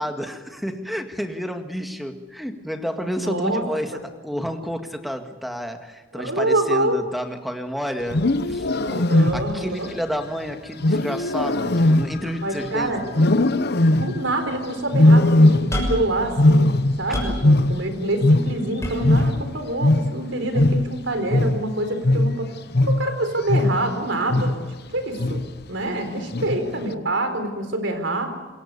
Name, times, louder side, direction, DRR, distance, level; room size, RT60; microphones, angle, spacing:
voice 1, 0.0-3.9 4.2-13.3 17.1-17.3, equal, ahead, 6 dB, 1.9 m, -30 dB
voice 2, 3.0-3.6 3.9-4.0 6.1-7.0 9.1-9.9 12.4-13.0 13.9-22.5 22.9-24.6 24.9-25.4 25.7-28.3, right 1 dB, 70° right, 7 dB, 4.4 m, -26 dB
Wild animals, 8.0-9.7 10.8-12.7 13.1-14.3 14.9-16.0 16.2-18.8 19.0-23.9 24.3-24.7 25.2-25.6 26.3-26.8, left 1 dB, 55° left, 1.0 m, -19 dB
sound 1, 15.7-16.1 16.7-17.5 18.8-19.4 20.6-20.7, left 1 dB, 15° left, 6.1 m, -27 dB
27.0 x 22.0 x 6.9 m, 1.2 s
head